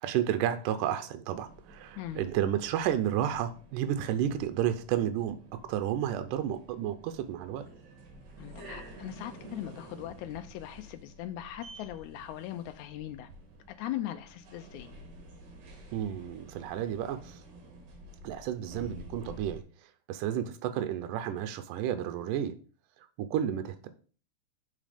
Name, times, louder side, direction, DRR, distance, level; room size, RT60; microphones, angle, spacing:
voice 1, 0.0-5.4 5.6-7.7 15.9-17.4 18.2-19.6 20.1-22.6 23.2-23.9, right 10 dB, 80° right, 9 dB, 2.2 m, -31 dB
sound 1, 1.2-19.6, right 1 dB, 65° right, 2.9 m, -50 dB
voice 2, 8.4-13.3 13.8-14.9, left 13 dB, 85° left, 7 dB, 1.7 m, -39 dB
7.5 x 4.1 x 5.0 m, 0.41 s
omnidirectional pair, 3.9 m